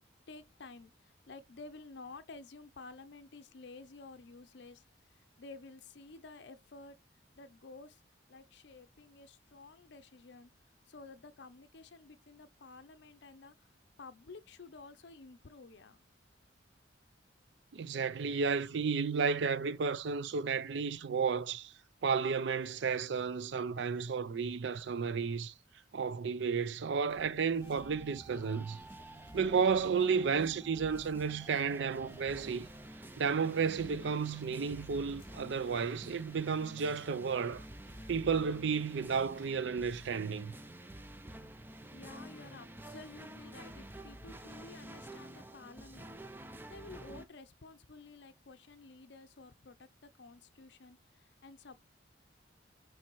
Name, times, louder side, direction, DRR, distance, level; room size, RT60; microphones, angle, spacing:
voice 1, 0.3-4.8 5.4-7.0 7.4-8.0 8.3-10.5 10.9-13.5 14.0-16.0 41.9-46.2 46.7-49.9 50.2-51.8, left 3 dB, 65° left, 0.6 m, -52 dB
voice 2, 17.7-21.7 22.0-25.5 25.9-28.8 29.3-32.7 33.2-37.7 38.1-40.5, right 5 dB, 70° right, 0.5 m, -32 dB
sound 1, 27.1-39.5, left 1 dB, 25° left, 1.9 m, -62 dB
sound 2, 27.6-47.3, right 1 dB, 10° right, 0.4 m, -50 dB
8.6 x 3.3 x 4.5 m
head